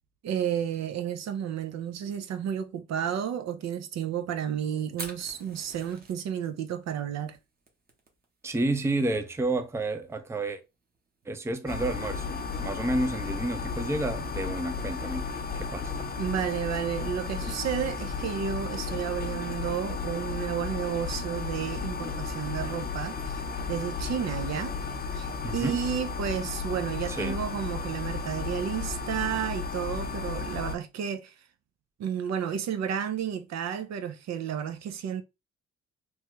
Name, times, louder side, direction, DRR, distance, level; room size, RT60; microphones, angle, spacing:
voice 1, 0.2-7.4 16.2-24.8 25.1-31.3 32.0-35.2, right 9 dB, 60° right, 0.5 m, -32 dB
Fire, 4.9-14.7, right 3 dB, 30° right, 1.0 m, -50 dB
voice 2, 8.4-10.6 11.3-15.3 15.5-16.1 25.4-25.8 27.1-27.4, right 2 dB, 10° right, 0.5 m, -30 dB
sound 1, 11.7-30.7, left 5 dB, 30° left, 0.7 m, -34 dB
3.1 x 2.3 x 3.0 m
cardioid pair, 90°, 30 cm